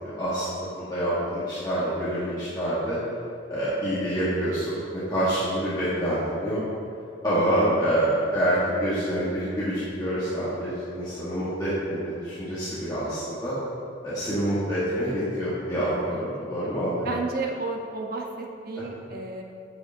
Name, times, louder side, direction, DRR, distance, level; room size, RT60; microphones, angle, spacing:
voice 1, 0.0-3.0 3.5-6.6 7.2-13.6 14.0-17.1, right 1 dB, 20° left, -11 dB, 1.3 m, -27 dB
voice 2, 15.8-16.2 17.0-19.4, right 3 dB, 50° right, 1 dB, 0.8 m, -33 dB
8.3 x 6.9 x 2.7 m, 2.6 s
head